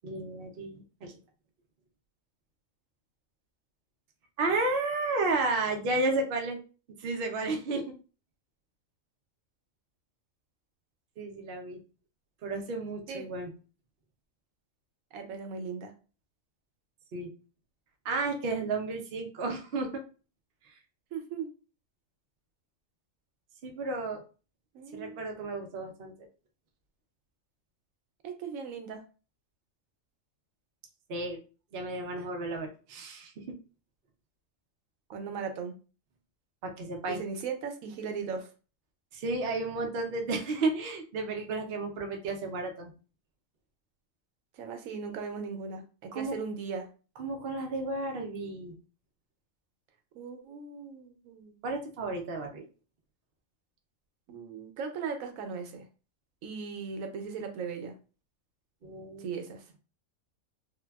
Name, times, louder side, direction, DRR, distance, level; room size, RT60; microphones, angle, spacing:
voice 1, 0.0-1.1 4.4-6.6 7.0-7.9 11.2-11.8 12.4-13.5 17.1-17.3 18.0-20.0 23.6-24.2 24.9-26.1 31.1-31.4 31.7-33.4 36.6-37.2 39.1-42.9 46.1-46.4 47.2-48.8 51.6-52.6 58.8-59.3, right 2 dB, 55° right, 3 dB, 0.7 m, -32 dB
voice 2, 15.1-15.9 21.1-21.5 24.7-25.2 28.2-29.0 35.1-35.7 37.1-38.5 44.6-46.9 50.1-51.5 54.3-55.9 56.4-57.9 59.2-59.6, right 5 dB, 85° right, 5 dB, 1.0 m, -38 dB
3.2 x 2.2 x 2.2 m, 0.35 s
omnidirectional pair, 1.4 m